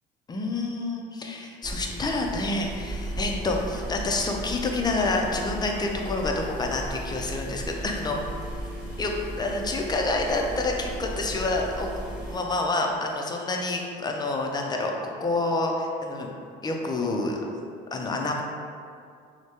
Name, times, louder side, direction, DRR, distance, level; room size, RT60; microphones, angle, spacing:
voice 1, 0.3-8.2 9.0-11.9 12.3-16.3 16.6-17.4 17.9-18.4, left 2 dB, 20° left, 1 dB, 0.4 m, -28 dB
sound 1, 1.6-12.4, right 1 dB, 5° right, 1.1 m, -35 dB
3.2 x 2.1 x 2.8 m, 2.3 s
supercardioid pair, 85°, 20 cm